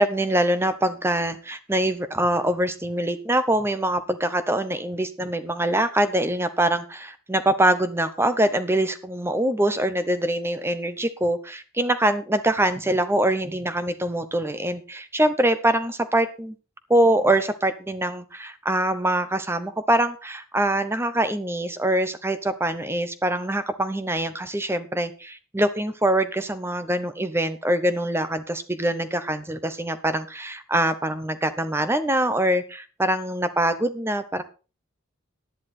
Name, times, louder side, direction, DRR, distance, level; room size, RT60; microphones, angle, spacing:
voice 1, 0.0-16.5 16.9-34.4, right 1 dB, 10° right, 12 dB, 0.8 m, -24 dB
11.0 x 10.5 x 4.3 m, 0.34 s
head